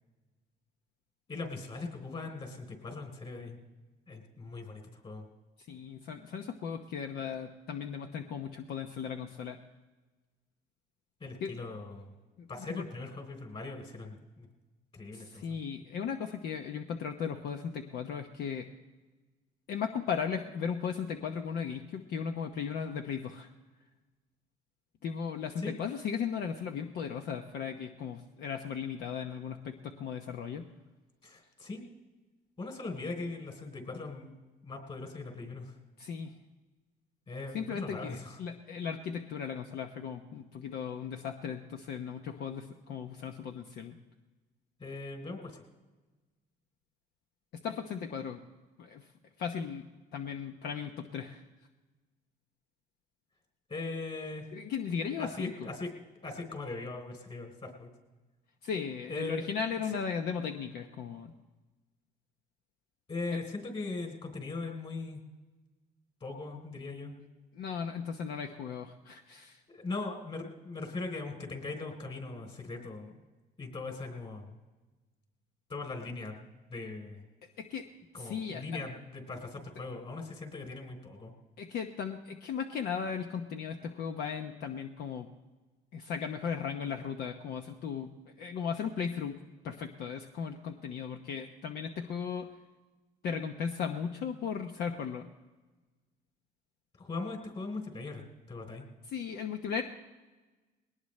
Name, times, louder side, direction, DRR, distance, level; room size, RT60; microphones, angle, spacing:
voice 1, 1.3-3.6 4.1-5.3 11.2-12.1 12.5-14.5 14.9-15.4 25.6-25.8 31.2-31.8 32.6-34.3 34.6-35.7 37.3-38.4 44.8-45.5 53.7-54.5 55.2-55.9 56.2-57.9 59.1-59.5 63.1-65.2 66.2-67.2 69.7-73.2 73.6-74.5 75.7-77.2 78.1-81.3 97.0-98.2 98.5-98.9, left 3 dB, 35° left, 4 dB, 3.6 m, -40 dB
voice 2, 5.7-9.6 11.4-11.5 12.4-12.8 15.1-18.7 19.7-23.5 25.0-30.7 36.0-36.3 37.5-44.0 47.6-48.4 48.8-49.1 49.4-51.4 54.5-55.7 58.6-61.3 63.3-63.4 67.5-69.6 77.6-77.9 78.2-78.8 81.6-85.3 85.9-88.1 88.4-89.4 89.6-92.5 93.2-95.3 99.1-99.8, left 7 dB, 70° left, 4 dB, 1.0 m, -36 dB
20.5 x 19.0 x 3.3 m, 1.2 s
cardioid pair, 110°, 17 cm